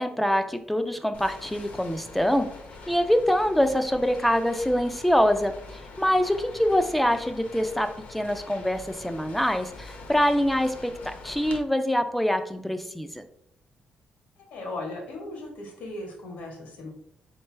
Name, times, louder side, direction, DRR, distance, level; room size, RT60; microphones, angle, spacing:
voice 1, 0.0-2.5 2.9-5.5 6.0-13.2, equal, 5° left, 8 dB, 0.3 m, -24 dB
sound 1, 1.1-11.6, left 3 dB, 65° left, 0.8 m, -44 dB
voice 2, 14.4-16.9, left 2 dB, 85° left, 0 dB, 1.6 m, -37 dB
4.3 x 3.2 x 3.3 m, 0.73 s
cardioid pair, 165°, 3 cm